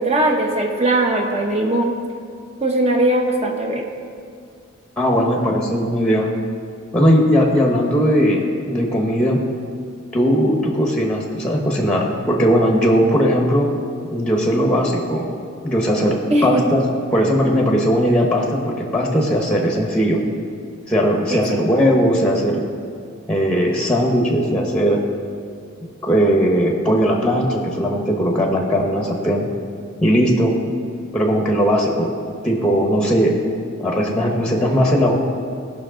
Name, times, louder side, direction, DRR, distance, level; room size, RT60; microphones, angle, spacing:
voice 1, 0.0-2.0 2.6-3.9 16.3-16.8 21.3-21.6, right 1 dB, 30° right, 1 dB, 1.1 m, -19 dB
voice 2, 5.0-6.3 6.9-9.4 10.1-13.7 14.1-15.3 15.6-16.8 17.1-20.2 20.9-22.6 23.3-25.0 26.0-29.5 30.0-30.5 31.1-32.1 32.4-33.3 33.8-35.2, equal, 5° left, 0 dB, 1.0 m, -18 dB
16.5 x 5.8 x 3.8 m, 2.2 s
head